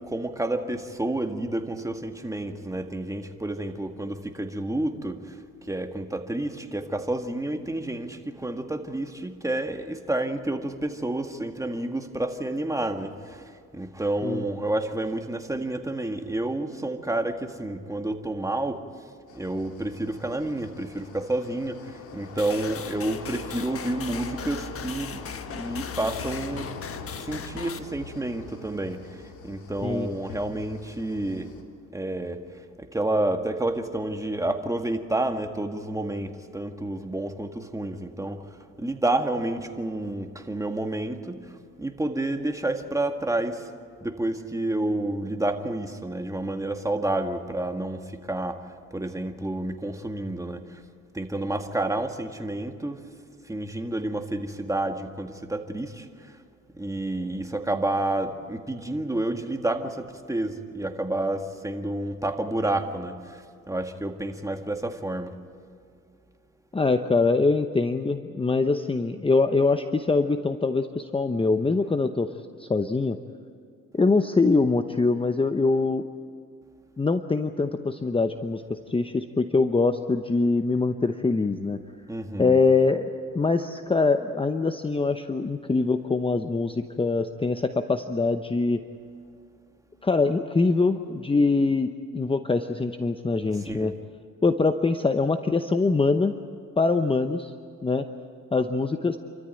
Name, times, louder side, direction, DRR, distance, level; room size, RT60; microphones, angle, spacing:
voice 1, 0.0-5.4 5.7-18.8 19.3-25.2 25.5-26.7 27.2-31.6 31.9-32.4 32.8-38.5 38.8-43.7 44.0-48.7 48.9-50.8 51.1-53.0 53.4-56.4 56.7-65.3 82.1-82.6 93.7-93.9, right 1 dB, 10° right, 5 dB, 1.8 m, -30 dB
sound 1, 19.3-31.6, left 5 dB, 80° left, 2.7 m, -41 dB
sound 2, 22.4-27.8, left 7 dB, 50° left, 1.3 m, -39 dB
voice 2, 66.7-72.3 72.6-73.2 73.9-76.0 77.0-81.8 82.4-88.8 90.0-93.9 94.4-96.3 96.8-97.5 97.8-98.0 98.5-99.2, left 3 dB, 20° left, 8 dB, 0.8 m, -23 dB
28.5 x 14.0 x 9.1 m, 2.2 s
cardioid pair, 90°, 30 cm